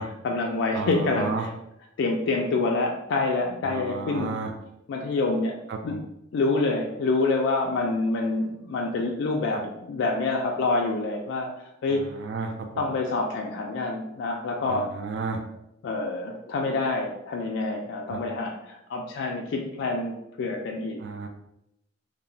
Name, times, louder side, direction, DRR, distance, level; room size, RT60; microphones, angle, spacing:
voice 1, 0.0-1.5 2.0-4.3 4.9-6.0 6.3-11.5 11.8-12.0 12.8-14.9 15.8-21.0, left 3 dB, 65° left, 0 dB, 0.3 m, -27 dB
voice 2, 0.7-1.4 3.7-4.5 5.7-6.0 9.5-9.6 11.9-12.5 14.7-15.4 18.1-18.2 21.0-21.3, right 4 dB, 65° right, 4 dB, 0.3 m, -32 dB
2.9 x 2.0 x 2.6 m, 0.83 s
head